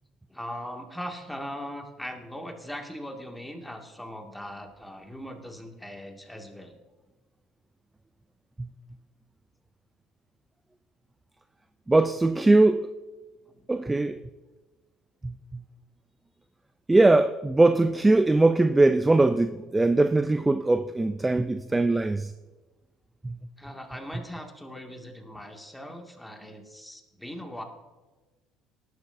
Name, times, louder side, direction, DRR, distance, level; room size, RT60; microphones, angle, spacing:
voice 1, 0.3-6.8 13.5-13.6 23.6-27.6, equal, 5° left, 2.2 m, -40 dB
voice 2, 11.9-12.9 13.7-14.2 15.2-15.3 16.9-22.3 23.2-23.4, right 2 dB, 15° right, 0.5 m, -21 dB
19.0 x 11.0 x 2.7 m
hypercardioid pair, 65°, 0 cm